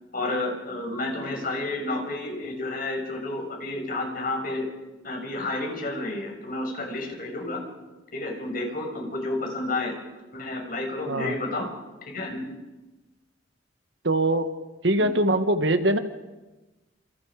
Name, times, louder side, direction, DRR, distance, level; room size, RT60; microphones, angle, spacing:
voice 1, 0.1-4.7 5.0-7.6 8.1-9.9 10.3-11.7 12.1-12.5 15.0-15.1, left 2 dB, 50° left, 2 dB, 6.6 m, -30 dB
voice 2, 14.0-14.5 14.8-16.0, right 1 dB, 70° right, 8 dB, 1.9 m, -22 dB
28.5 x 28.5 x 5.2 m, 1.1 s
head